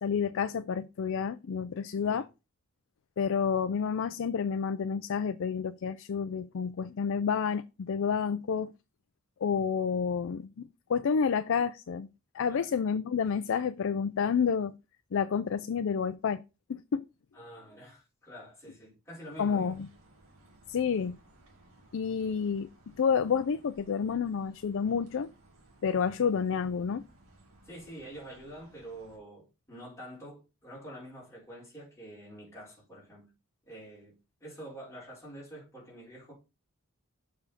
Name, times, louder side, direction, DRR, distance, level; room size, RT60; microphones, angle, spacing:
voice 1, 0.0-2.3 3.2-8.7 9.4-12.1 12.3-14.7 15.1-16.4 16.7-17.1 19.4-19.9 20.7-21.2 21.9-22.7 23.0-25.3 25.8-27.0, left 6 dB, 60° left, 0.4 m, -29 dB
voice 2, 17.3-19.7 27.6-33.3 33.7-34.1 34.4-36.3, right 1 dB, 15° left, 4.4 m, -47 dB
sound 1, 19.3-29.2, right 1 dB, 70° right, 2.2 m, -60 dB
7.0 x 5.1 x 4.2 m
head